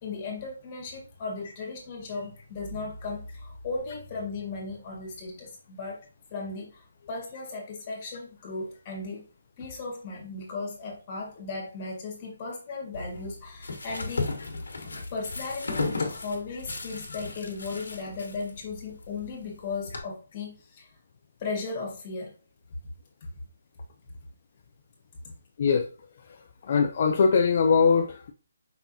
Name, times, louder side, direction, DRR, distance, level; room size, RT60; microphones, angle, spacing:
voice 1, 0.0-6.0 6.3-9.2 9.6-14.3 14.7-20.9 21.4-22.3 25.2-25.3, left 3 dB, 25° left, -1 dB, 1.8 m, -36 dB
sound 1, 12.9-20.0, left 3 dB, 80° left, 1.3 m, -35 dB
voice 2, 26.6-28.3, left 5 dB, 45° left, 4 dB, 0.5 m, -22 dB
5.5 x 3.5 x 2.7 m, 0.37 s
hypercardioid pair, 165°, 0 cm